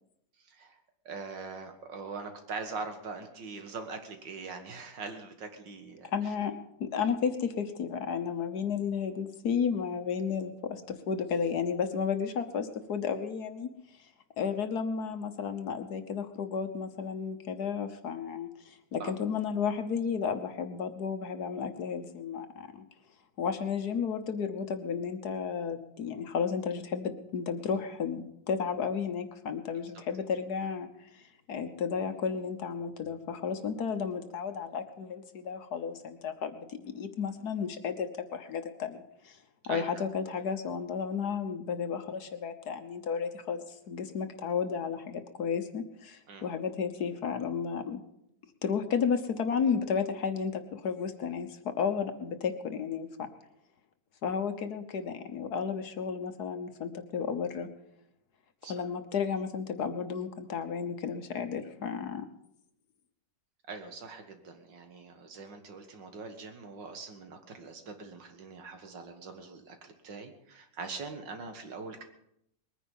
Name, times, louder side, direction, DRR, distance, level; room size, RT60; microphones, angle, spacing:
voice 1, 0.5-0.8 1.1-6.3 19.0-19.1 39.6-40.0 46.3-46.5 58.6-58.7 63.7-72.0, right 4 dB, 75° right, 6 dB, 2.3 m, -42 dB
voice 2, 6.0-6.5 6.8-13.7 14.0-14.1 14.4-22.8 23.4-39.4 39.7-48.0 48.6-53.3 54.2-57.7 58.7-62.2, left 6 dB, 60° left, 8 dB, 1.5 m, -33 dB
21.0 x 9.9 x 5.5 m, 0.76 s
omnidirectional pair, 2.0 m